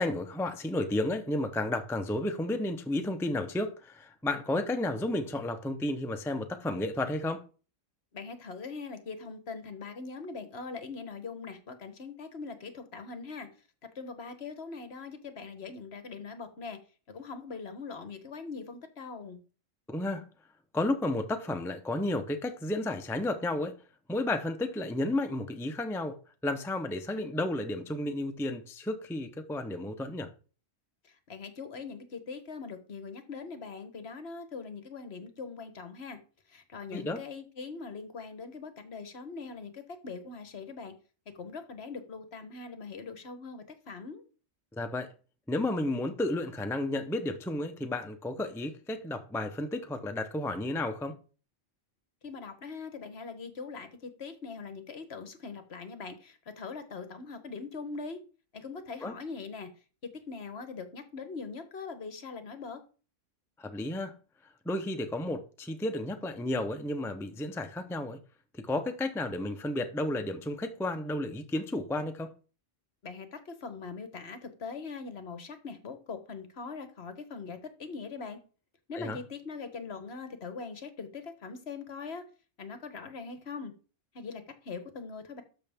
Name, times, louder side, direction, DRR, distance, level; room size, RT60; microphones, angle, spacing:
voice 1, 0.0-7.4 19.9-20.2 20.7-23.8 24.1-26.2 26.4-30.3 36.9-37.2 44.8-45.1 45.5-51.2 59.0-59.1 63.6-64.2 64.6-68.2 68.5-72.3 78.9-79.2, left 1 dB, 5° left, 0.5 m, -32 dB
voice 2, 8.1-13.5 13.9-16.8 17.1-19.4 31.0-36.2 36.5-40.9 41.3-44.2 52.2-58.2 58.5-59.7 60.1-62.8 73.0-78.4 78.9-82.2 82.6-83.7 84.1-85.4, left 4 dB, 55° left, 1.3 m, -42 dB
12.5 x 6.2 x 3.5 m
omnidirectional pair, 1.3 m